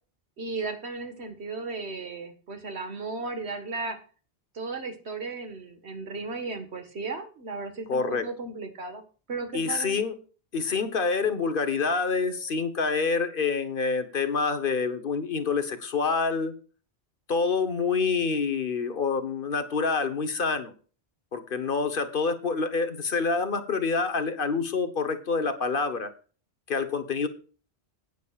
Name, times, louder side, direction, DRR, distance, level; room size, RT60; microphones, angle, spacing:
voice 1, 0.4-4.0 4.5-9.0 9.3-10.0, right 3 dB, 85° right, 6 dB, 1.7 m, -35 dB
voice 2, 7.9-8.3 9.5-10.1 10.5-16.5 17.3-20.7 21.3-26.1 26.7-27.3, left 4 dB, 55° left, 9 dB, 1.2 m, -27 dB
15.5 x 9.3 x 2.4 m, 0.38 s
omnidirectional pair, 1.1 m